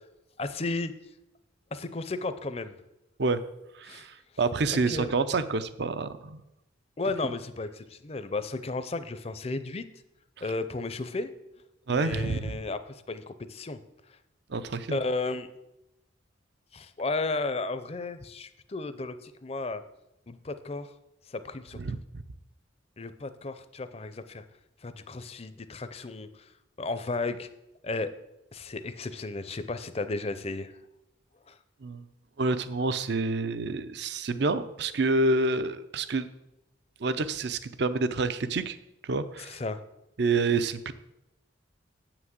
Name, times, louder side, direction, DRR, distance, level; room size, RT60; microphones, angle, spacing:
voice 1, 0.4-0.9 1.7-2.7 3.9-4.0 4.7-5.1 7.0-9.9 10.4-11.3 11.9-13.8 14.9-15.5 16.7-19.8 20.3-20.9 21.3-22.0 23.0-24.4 24.8-26.3 26.8-27.5 27.8-28.1 28.5-30.7 31.5-31.6 39.4-39.8, left 3 dB, 30° left, 12 dB, 0.5 m, -34 dB
voice 2, 3.8-6.4 11.9-12.5 14.5-15.0 21.8-22.0 31.8-32.0 32.4-36.3 37.0-38.8 39.0-39.6 40.2-40.9, right 3 dB, 55° right, 13 dB, 0.5 m, -28 dB
8.0 x 6.0 x 7.9 m, 0.91 s
head